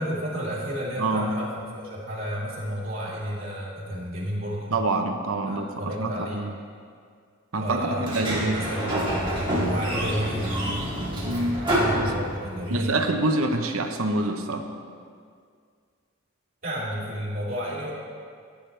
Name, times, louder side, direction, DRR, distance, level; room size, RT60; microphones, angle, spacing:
voice 1, 0.0-4.7 5.5-6.5 7.6-10.5 11.8-13.0 16.6-17.9, equal, 45° right, -8 dB, 2.9 m, -32 dB
voice 2, 1.0-1.3 4.7-6.5 7.5-8.6 11.2-11.6 11.9-12.1 12.7-14.7, right 2 dB, 85° right, 5 dB, 0.9 m, -26 dB
Sliding door, 8.0-12.7, right 1 dB, 25° right, 2.4 m, -27 dB
14.5 x 9.3 x 3.4 m, 2.1 s
head